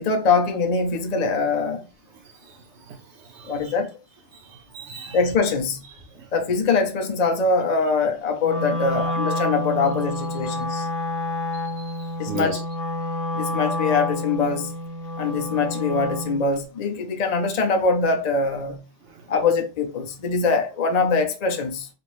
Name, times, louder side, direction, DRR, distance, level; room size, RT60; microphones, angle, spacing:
voice 1, 0.0-1.8 3.4-3.9 5.1-5.8 6.3-10.9 12.2-12.6 13.3-14.7 15.2-18.8 19.3-21.9, left 4 dB, 50° left, 0.5 m, -23 dB
voice 2, 2.9-3.7 4.3-5.2 6.2-6.3 11.5-12.6 19.1-19.2, right 7 dB, 70° right, 0.8 m, -37 dB
Wind instrument woodwind instrument, 8.4-16.4, left 1 dB, 90° left, 1.0 m, -28 dB
2.8 x 2.5 x 3.0 m
omnidirectional pair, 1.3 m